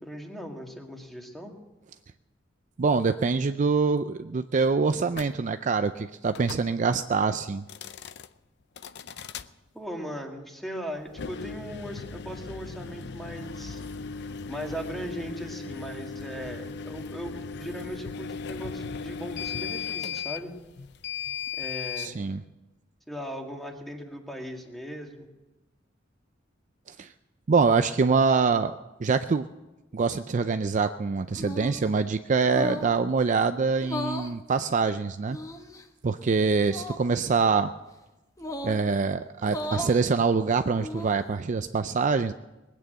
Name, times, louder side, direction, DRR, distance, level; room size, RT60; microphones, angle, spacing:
voice 1, 0.0-1.5 9.7-13.8 14.5-17.3 17.6-20.5 21.5-22.2 23.1-25.3, equal, ahead, 2 dB, 2.0 m, -38 dB
voice 2, 2.8-7.6 22.0-22.4 26.9-27.1 27.5-29.5 29.9-35.4 36.0-37.7 38.6-42.3, right 4 dB, 40° right, 10 dB, 0.4 m, -25 dB
sound 1, 5.1-5.3 6.3-6.7 7.6-8.3 8.8-9.5 11.1-22.1, left 6 dB, 60° left, 0.6 m, -37 dB
sound 2, 31.4-31.9 32.5-33.0 33.8-34.3 35.3-35.8 36.7-37.0 38.4-38.8 39.4-40.0 40.6-41.2, left 1 dB, 20° left, 1.0 m, -35 dB
20.0 x 9.0 x 7.9 m, 1.1 s
head